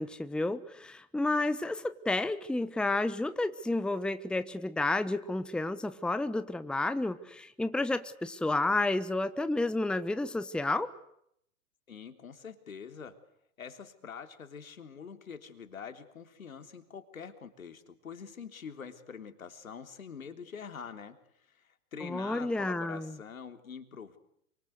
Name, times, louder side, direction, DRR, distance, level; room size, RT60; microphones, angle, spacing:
voice 1, 0.0-10.9 22.0-23.1, left 2 dB, ahead, 12 dB, 1.1 m, -31 dB
voice 2, 11.9-13.2 13.6-24.2, left 6 dB, 75° left, 8 dB, 3.7 m, -45 dB
29.0 x 25.0 x 8.2 m, 0.74 s
figure-of-eight pair, 110°, 41 cm